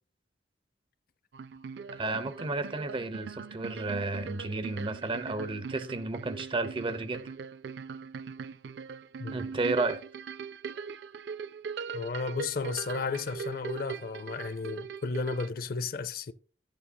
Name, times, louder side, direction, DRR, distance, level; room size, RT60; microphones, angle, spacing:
sound 1, 1.3-15.5, right 6 dB, 70° right, 0.4 m, -41 dB
voice 1, 1.9-7.3 9.3-10.0, right 3 dB, 30° right, 0.7 m, -32 dB
voice 2, 9.2-9.5 11.9-16.3, left 4 dB, 55° left, 0.5 m, -33 dB
12.5 x 8.3 x 2.2 m
head